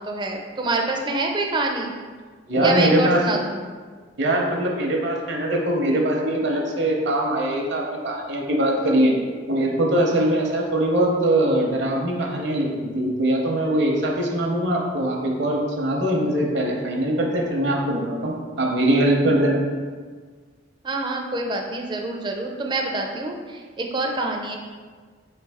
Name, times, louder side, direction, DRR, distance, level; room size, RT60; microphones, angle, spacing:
voice 1, 0.0-1.9 2.6-3.6 20.8-24.6, right 2 dB, 25° right, 2 dB, 0.4 m, -26 dB
voice 2, 2.5-3.2 4.2-9.1 9.5-19.6, right 1 dB, 65° right, 0 dB, 0.7 m, -22 dB
4.6 x 3.2 x 3.5 m, 1.5 s
head